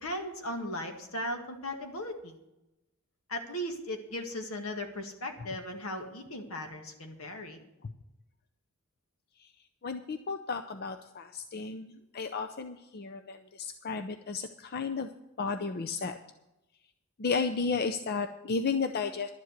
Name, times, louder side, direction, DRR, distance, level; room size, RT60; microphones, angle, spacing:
voice 1, 0.0-2.3 3.3-7.6, left 1 dB, 75° left, 4 dB, 1.9 m, -37 dB
voice 2, 9.8-15.1 15.4-16.2 17.2-19.3, left 4 dB, 45° left, 7 dB, 0.6 m, -33 dB
11.5 x 7.6 x 8.0 m, 0.92 s
head